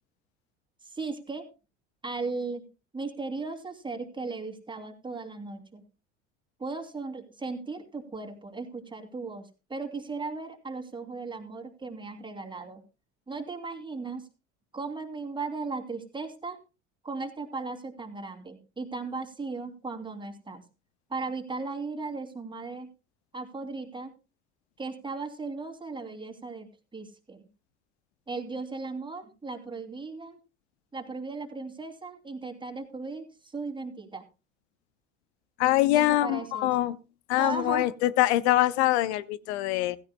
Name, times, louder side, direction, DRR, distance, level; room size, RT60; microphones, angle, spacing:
voice 1, 0.8-1.5 2.0-2.7 2.9-5.8 6.6-12.8 13.3-14.2 14.7-16.6 17.0-20.6 21.1-22.9 23.3-24.1 24.8-27.4 28.3-30.4 30.9-34.2 35.9-36.7 37.4-37.9, right 3 dB, 15° right, 2.7 m, -36 dB
voice 2, 35.6-37.0 37.3-40.0, left 15 dB, 65° left, 0.7 m, -24 dB
16.0 x 15.5 x 2.2 m
hypercardioid pair, 70°, 35 cm